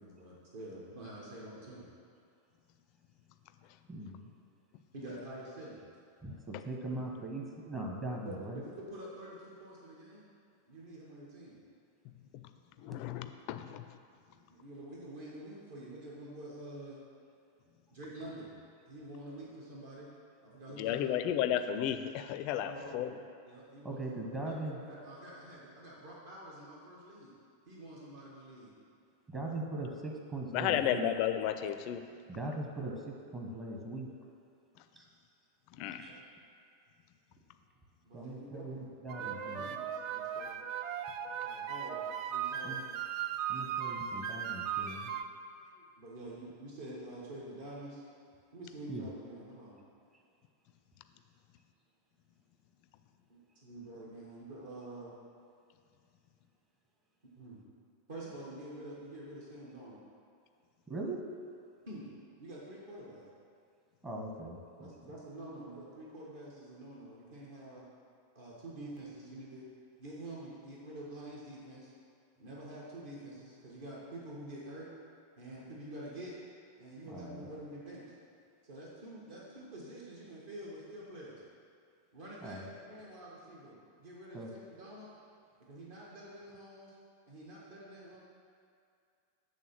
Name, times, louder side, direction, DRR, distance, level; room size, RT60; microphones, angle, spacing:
voice 1, 0.0-1.9 4.9-5.8 8.2-10.3 10.7-11.6 14.5-17.0 17.9-18.5 18.8-20.1 20.4-21.2 22.6-23.2 23.4-27.3 27.7-28.7 38.0-40.6 41.4-42.0 42.3-42.8 45.5-48.0 48.5-49.8 53.3-55.1 57.4-57.6 58.1-60.0 61.9-62.1 62.4-63.3 64.8-67.8 68.3-69.6 70.0-71.9 72.4-74.9 75.4-76.3 76.8-78.0 78.6-81.4 82.1-85.1 85.6-86.9 87.3-88.2, right 1 dB, 60° right, -5 dB, 1.4 m, -47 dB
voice 2, 3.9-4.3 6.2-8.6 23.8-24.8 29.3-31.1 32.3-34.1 35.0-35.1 35.9-36.2 38.1-39.7 42.6-42.8 43.5-45.1 48.9-49.1 60.9-61.2 64.0-64.9 77.1-77.5 82.4-82.7 84.3-84.5, right 2 dB, 20° right, 0 dB, 1.0 m, -40 dB
voice 3, 12.8-13.8 20.8-23.1 30.5-32.0 35.8-36.0, left 10 dB, 45° left, 9 dB, 0.4 m, -33 dB
sound 1, 39.1-45.2, right 9 dB, 40° right, 0.3 m, -37 dB
8.1 x 3.6 x 5.8 m, 2.3 s
figure-of-eight pair, 90°, 0 cm